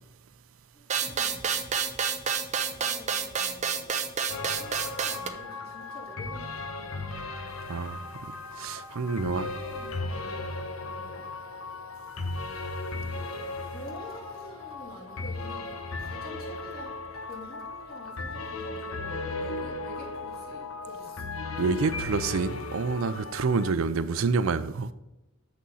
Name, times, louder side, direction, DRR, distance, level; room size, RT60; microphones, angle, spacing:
voice 1, 0.7-1.8 2.7-4.0 4.5-7.5 9.2-11.3 13.6-15.7 16.0-21.3, left 1 dB, 45° left, 3.2 m, -47 dB
sound 1, 0.9-5.3, right 6 dB, 35° right, 0.6 m, -29 dB
sound 2, 4.3-23.7, left 3 dB, 80° left, 0.9 m, -36 dB
voice 2, 7.7-8.0 8.6-9.5 21.6-24.9, right 4 dB, 75° right, 0.5 m, -27 dB
7.1 x 6.3 x 5.5 m
head